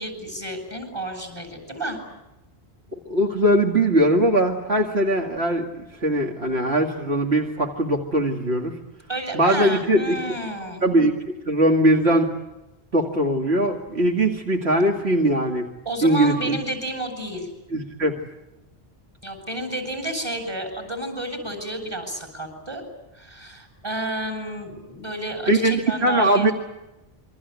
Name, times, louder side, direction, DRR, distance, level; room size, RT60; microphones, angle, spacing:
voice 1, 0.0-2.0 9.1-10.8 15.8-17.5 19.2-22.8 23.1-26.5, right 1 dB, 25° right, 7 dB, 7.8 m, -31 dB
voice 2, 3.1-8.7 9.3-10.4 10.8-12.3 12.9-15.7 16.0-16.6 17.7-18.2 25.5-26.5, right 1 dB, 70° right, 1 dB, 2.5 m, -21 dB
27.5 x 24.5 x 8.2 m, 0.98 s
omnidirectional pair, 1.1 m